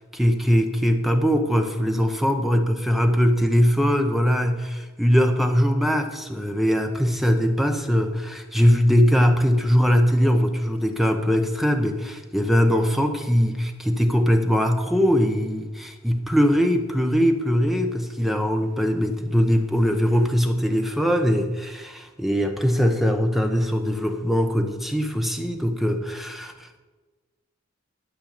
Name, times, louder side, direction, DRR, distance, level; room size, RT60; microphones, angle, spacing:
voice 1, 0.1-26.7, equal, ahead, 4 dB, 0.9 m, -21 dB
12.0 x 5.5 x 8.7 m, 1.3 s
head